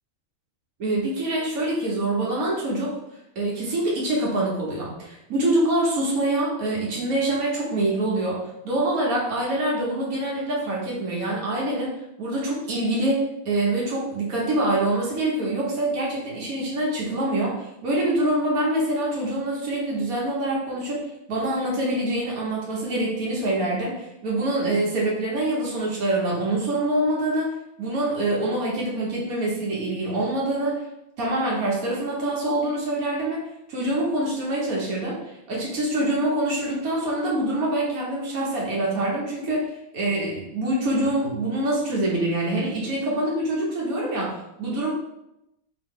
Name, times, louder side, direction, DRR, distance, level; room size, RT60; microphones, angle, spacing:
voice 1, 0.8-3.0 3.3-27.5 27.8-30.8 31.2-33.4 33.7-44.9, right 1 dB, 90° right, -4 dB, 1.6 m, -25 dB
5.0 x 2.9 x 3.7 m, 0.88 s
omnidirectional pair, 1.5 m